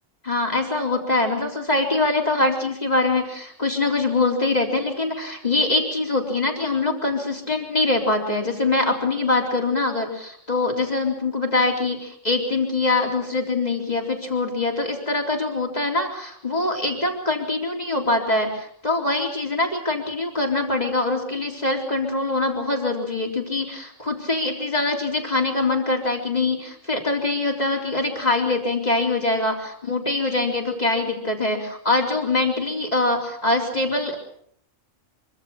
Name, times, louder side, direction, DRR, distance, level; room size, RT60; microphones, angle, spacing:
voice 1, 0.2-34.2, left 2 dB, 30° left, 0 dB, 4.1 m, -23 dB
25.0 x 24.5 x 6.0 m, 0.65 s
omnidirectional pair, 1.3 m